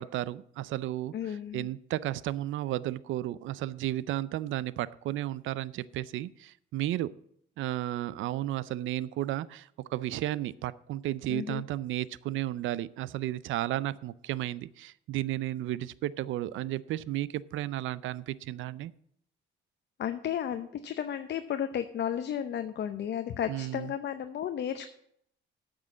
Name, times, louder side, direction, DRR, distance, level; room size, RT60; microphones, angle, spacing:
voice 1, 0.0-7.1 7.6-18.9 23.5-23.9, right 14 dB, 80° right, 19 dB, 0.5 m, -33 dB
voice 2, 1.1-1.7 11.3-11.6 20.0-24.9, left 9 dB, 60° left, 8 dB, 0.7 m, -33 dB
8.8 x 6.3 x 8.4 m, 0.70 s
cardioid pair, 90°, 20 cm